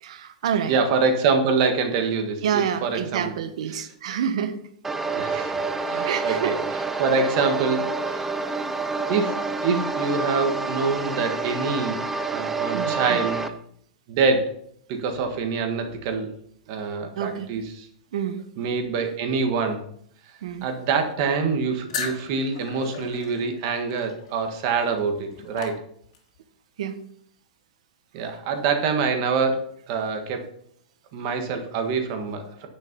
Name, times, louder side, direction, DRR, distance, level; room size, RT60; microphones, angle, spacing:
voice 1, 0.0-0.8 2.4-4.6 5.3-5.4 6.0-6.5 12.7-13.3 17.2-17.5 18.1-18.5 20.4-20.7 26.8-27.0, right 8 dB, 60° right, 10 dB, 1.2 m, -28 dB
voice 2, 0.7-3.3 5.1-6.5 7.0-8.3 9.1-9.3 9.6-12.0 12.3-13.5 14.1-14.4 14.9-16.3 16.7-17.9 18.6-19.8 20.6-25.7 28.1-29.6 29.9-30.4 31.1-32.7, right 5 dB, 35° right, 6 dB, 1.5 m, -25 dB
sound 1, 4.8-13.5, right 3 dB, 5° right, 0.4 m, -28 dB
sound 2, 21.9-26.4, left 6 dB, 50° left, 2.3 m, -37 dB
10.0 x 6.7 x 5.3 m, 0.65 s
supercardioid pair, 175°, 4 cm